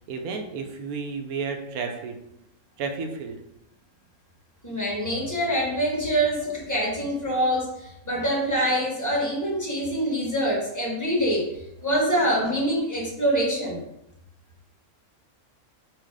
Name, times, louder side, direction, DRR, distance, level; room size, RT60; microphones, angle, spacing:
voice 1, 0.1-2.2 2.8-3.4, right 4 dB, 80° right, 5 dB, 1.1 m, -32 dB
voice 2, 4.6-11.5 11.8-13.8, right 1 dB, 15° left, -3 dB, 0.8 m, -25 dB
4.8 x 2.0 x 4.7 m, 0.85 s
omnidirectional pair, 1.5 m